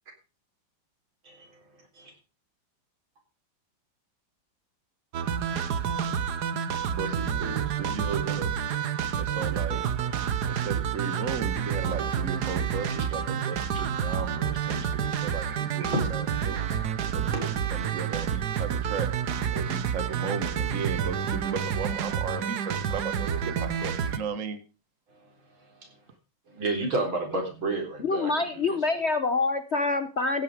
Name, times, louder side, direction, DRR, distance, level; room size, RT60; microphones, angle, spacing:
voice 1, 1.2-1.6 2.0-2.1 5.2-5.4 15.8-16.7 17.3-17.4 25.8-25.9 26.5-28.8, right 2 dB, 80° right, 3 dB, 4.8 m, -31 dB
sound 1, 5.1-24.2, right 8 dB, 60° right, 1.5 m, -29 dB
voice 2, 6.9-8.5 9.2-9.8 10.5-16.6 17.1-19.1 19.5-24.6, right 5 dB, 45° right, 10 dB, 1.6 m, -35 dB
voice 3, 28.0-30.4, left 3 dB, 50° left, 10 dB, 0.9 m, -26 dB
15.5 x 9.4 x 5.0 m, 0.32 s
omnidirectional pair, 2.2 m